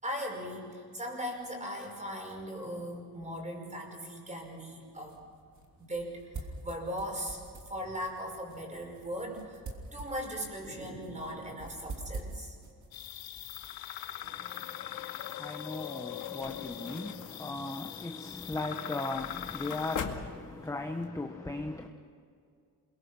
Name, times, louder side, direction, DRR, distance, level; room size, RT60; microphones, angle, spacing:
voice 1, 0.0-5.2 5.8-9.6 9.9-12.6, equal, 20° right, 5.6 m, -39 dB
sound 1, 4.6-14.5, right 3 dB, 50° right, 3.2 m, -47 dB
sound 2, 12.9-20.0, left 12 dB, 70° left, 0.8 m, -41 dB
voice 2, 14.2-21.9, left 2 dB, 10° left, 1.1 m, -38 dB
sound 3, 16.2-21.1, left 6 dB, 55° left, 2.2 m, -44 dB
28.0 x 22.5 x 6.2 m
cardioid pair, 130°, 37 cm